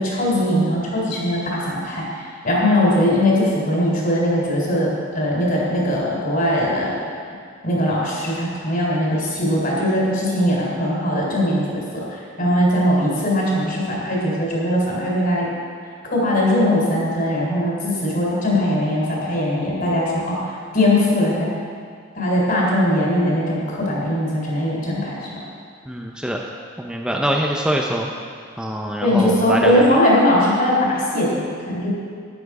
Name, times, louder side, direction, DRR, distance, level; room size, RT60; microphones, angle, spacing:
voice 1, 0.0-4.9 5.1-7.0 7.6-15.5 16.1-20.4 20.7-21.5 22.1-25.3 29.0-31.9, left 1 dB, 45° left, -4 dB, 3.8 m, -20 dB
voice 2, 25.9-26.4 26.8-28.1 28.6-29.8, equal, 5° right, -1 dB, 0.7 m, -24 dB
13.0 x 10.5 x 4.9 m, 2.1 s
head